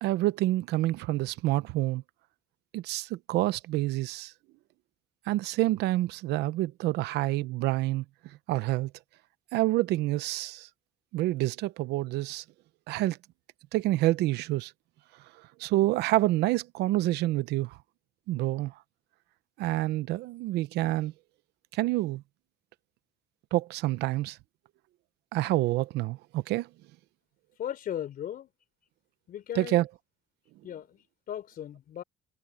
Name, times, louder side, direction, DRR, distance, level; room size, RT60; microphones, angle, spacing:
voice 1, 0.0-2.0 2.7-4.3 5.3-8.0 8.5-8.9 9.5-10.7 11.1-12.4 12.9-13.2 13.7-14.7 15.6-17.8 18.3-18.7 19.6-21.1 21.7-22.2 23.5-24.4 25.3-26.7 29.5-29.9, right 17 dB, 85° right, 0.8 m, -27 dB
voice 2, 27.6-28.5 29.3-29.8 30.6-32.0, left 10 dB, 60° left, 3.8 m, -37 dB
cardioid pair, 110°, 17 cm